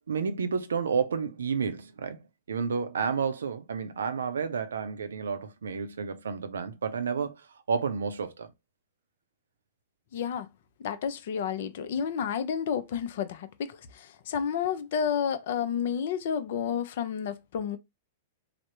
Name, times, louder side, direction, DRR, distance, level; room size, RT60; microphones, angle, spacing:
voice 1, 0.1-2.2 2.5-8.5, right 5 dB, 75° right, 0.4 m, -31 dB
voice 2, 10.1-10.5 10.8-17.8, left 7 dB, 60° left, 0.4 m, -31 dB
3.3 x 2.0 x 2.8 m
figure-of-eight pair, 100°, 0 cm